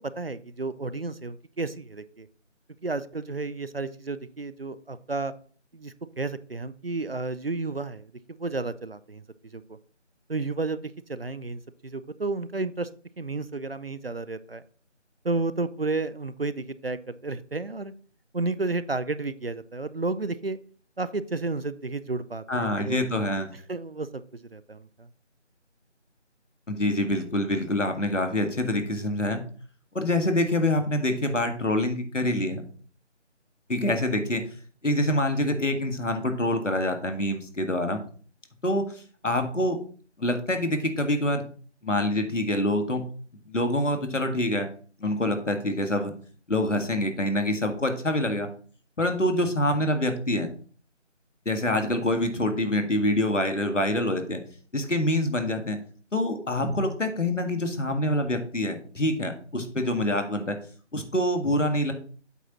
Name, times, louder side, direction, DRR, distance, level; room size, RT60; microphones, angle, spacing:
voice 1, 0.0-2.3 2.8-5.3 5.7-9.2 9.5-9.8 10.3-12.9 13.2-14.6 15.2-17.9 18.3-20.6 21.0-23.1 23.7-24.2 24.5-25.1, right 3 dB, 55° right, 15 dB, 0.5 m, -32 dB
voice 2, 22.5-23.5 26.7-29.4 29.9-32.6 33.7-34.4 34.8-38.0 38.6-39.8 40.2-41.4 41.8-43.0 43.5-44.7 45.0-46.1 46.5-48.5 49.0-50.5 51.5-54.4 54.7-55.8 56.1-60.6 60.9-61.9, left 1 dB, 80° left, 6 dB, 1.9 m, -26 dB
8.1 x 4.2 x 6.1 m, 0.43 s
figure-of-eight pair, 165°, 37 cm